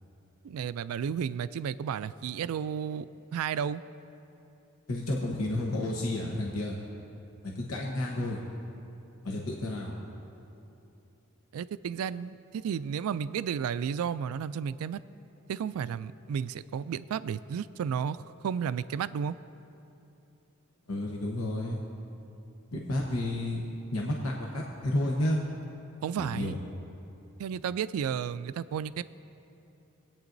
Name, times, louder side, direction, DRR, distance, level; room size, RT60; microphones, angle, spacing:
voice 1, 0.4-3.8 11.5-15.0 15.5-18.2 18.4-19.4 26.0-26.5 27.4-29.0, right 7 dB, 85° right, 16 dB, 0.3 m, -32 dB
voice 2, 4.9-6.8 7.4-8.4 9.2-9.9 20.9-21.8 22.7-23.6 23.9-25.4 26.2-26.6, left 1 dB, 80° left, -2 dB, 1.0 m, -31 dB
22.5 x 8.9 x 2.6 m, 2.9 s
head